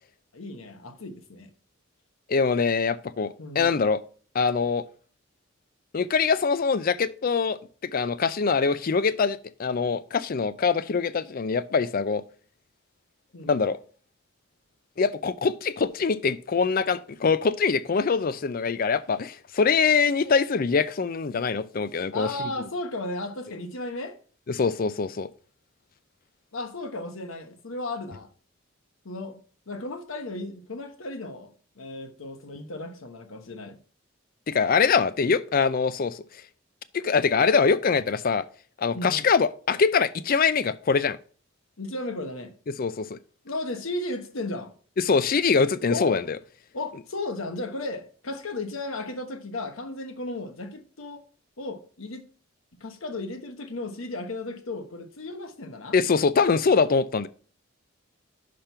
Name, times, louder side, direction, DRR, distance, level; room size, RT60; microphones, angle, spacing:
voice 1, 0.3-1.5 3.4-3.8 13.3-13.7 22.1-24.2 26.5-28.3 29.0-29.4 29.7-33.8 38.9-39.3 41.8-42.5 43.4-44.7 45.9-46.2 46.7-51.2 51.6-52.2 52.8-56.0, left 2 dB, 85° left, 1.1 m, -35 dB
voice 2, 2.3-4.0 4.3-4.8 5.9-12.2 13.5-13.8 15.0-22.3 24.5-25.3 34.5-36.2 36.9-38.4 38.8-41.2 42.8-43.2 45.0-46.4 55.9-57.3, left 5 dB, 45° left, 0.4 m, -23 dB
5.9 x 5.1 x 5.6 m
head